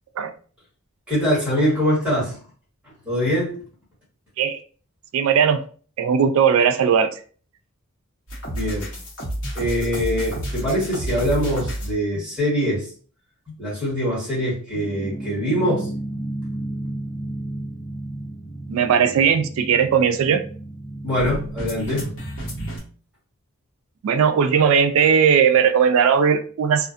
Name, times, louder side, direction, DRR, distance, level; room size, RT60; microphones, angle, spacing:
voice 1, 1.1-2.4 2.8-3.5 8.5-8.9 9.5-12.9 13.5-15.9 21.0-22.1, equal, 5° right, -9 dB, 1.4 m, -23 dB
voice 2, 5.1-5.6 6.0-7.1 18.7-20.4 24.0-26.9, right 7 dB, 70° right, 9 dB, 0.3 m, -18 dB
sound 1, 8.3-11.9 14.8-22.8, right 1 dB, 65° left, 1.1 m, -31 dB
2.5 x 2.4 x 2.5 m, 0.41 s
head